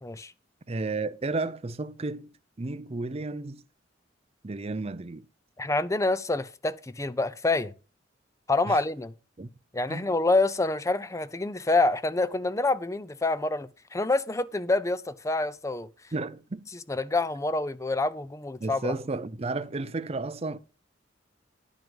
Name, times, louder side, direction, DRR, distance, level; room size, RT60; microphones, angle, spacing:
voice 1, 0.7-3.6 4.4-5.3 8.7-8.8 9.4-9.5 9.9-10.1 16.1-16.7 18.6-20.6, right 3 dB, 35° right, 0.6 m, -33 dB
voice 2, 5.6-7.7 8.5-9.1 9.7-15.9 16.9-18.9, left 2 dB, 15° left, 0.5 m, -27 dB
10.5 x 6.1 x 5.4 m
head